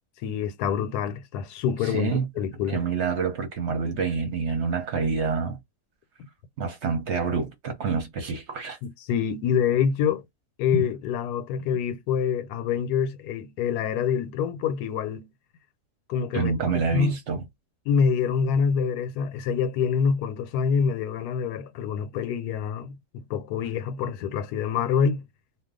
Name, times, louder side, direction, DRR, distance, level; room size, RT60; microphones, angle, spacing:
voice 1, 0.2-2.8 8.8-10.2 10.6-15.3 16.1-16.5 16.9-17.2 17.9-25.2, left 7 dB, 85° left, 1.2 m, -26 dB
voice 2, 1.8-2.2 2.7-5.6 6.6-8.8 16.3-17.4, right 5 dB, 55° right, 0.9 m, -27 dB
2.5 x 2.3 x 3.6 m
omnidirectional pair, 1.7 m